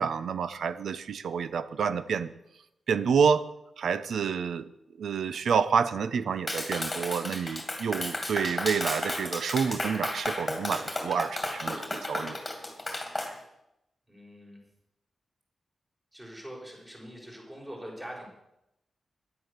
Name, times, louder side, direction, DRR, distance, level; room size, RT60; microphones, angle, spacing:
voice 1, 0.0-2.3 2.9-3.5 3.8-4.7 5.0-12.4, right 6 dB, 75° right, 14 dB, 0.8 m, -28 dB
Clapping, 6.5-13.3, left 1 dB, 10° left, 2.4 m, -33 dB
voice 2, 14.1-14.6 16.1-18.3, equal, 15° right, -1 dB, 4.8 m, -43 dB
15.5 x 11.0 x 6.7 m, 0.85 s
wide cardioid pair, 180°, 0 cm